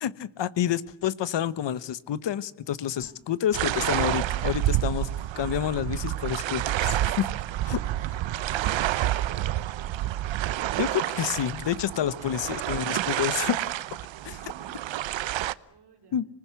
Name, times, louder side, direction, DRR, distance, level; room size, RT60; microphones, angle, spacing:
voice 1, 0.0-5.1 5.4-7.3 7.6-7.8 10.8-13.6 14.2-14.3 16.1-16.3, left 10 dB, 70° left, 16 dB, 1.2 m, -28 dB
sound 1, 3.5-15.5, right 13 dB, 85° right, 0.9 m, -29 dB
voice 2, 7.8-10.2 11.9-12.1 14.1-14.9 15.2-16.2, right 6 dB, 60° right, 0 dB, 3.6 m, -55 dB
26.0 x 20.0 x 8.2 m, 0.77 s
cardioid pair, 130°, 44 cm